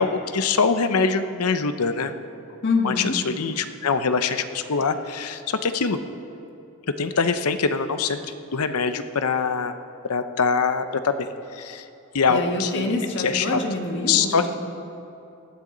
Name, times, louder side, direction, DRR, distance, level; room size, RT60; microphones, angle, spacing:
voice 1, 0.0-2.1 2.8-6.0 7.0-8.2 8.5-9.7 10.1-11.8 12.1-13.6 14.1-14.4, left 5 dB, 85° left, 9 dB, 0.8 m, -23 dB
voice 2, 2.6-3.2 12.3-14.6, left 2 dB, 55° left, 1 dB, 1.7 m, -26 dB
19.0 x 13.0 x 4.0 m, 2.8 s
head